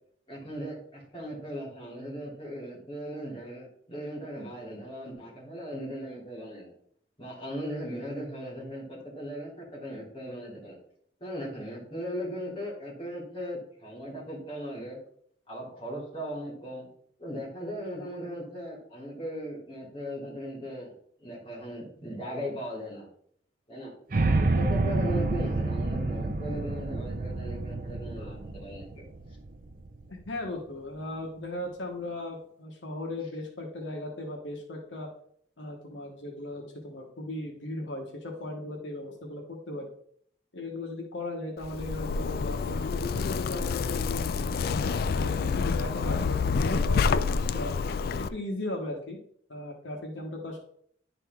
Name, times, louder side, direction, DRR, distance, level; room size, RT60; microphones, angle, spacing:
voice 1, 0.3-6.7 7.2-10.8 11.2-15.0 15.5-16.9 17.2-20.9 21.2-23.1 23.7-23.9 24.4-29.0, equal, 30° left, -5 dB, 3.1 m, -38 dB
sound 1, 24.1-30.2, right 2 dB, 50° right, 0.6 m, -29 dB
voice 2, 30.1-35.1 35.6-39.9 40.5-44.3 44.7-47.7 48.2-49.2 49.5-50.6, left 1 dB, 85° left, 0 dB, 1.3 m, -37 dB
Zipper (clothing), 41.6-48.3, left 5 dB, 55° left, 0.3 m, -28 dB
10.5 x 4.1 x 3.6 m, 0.64 s
head